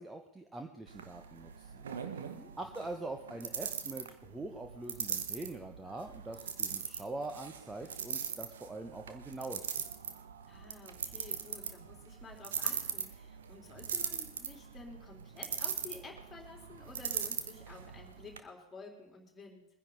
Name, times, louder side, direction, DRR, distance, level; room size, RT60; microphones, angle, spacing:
voice 1, 0.0-1.9 2.6-9.7, right 2 dB, 10° right, 5 dB, 1.1 m, -43 dB
sound 1, 0.9-18.4, right 7 dB, 65° right, 1.2 m, -41 dB
voice 2, 2.0-2.5 10.5-19.7, left 3 dB, 15° left, 0 dB, 3.8 m, -52 dB
23.0 x 10.5 x 4.1 m, 0.85 s
figure-of-eight pair, 90°, 0 cm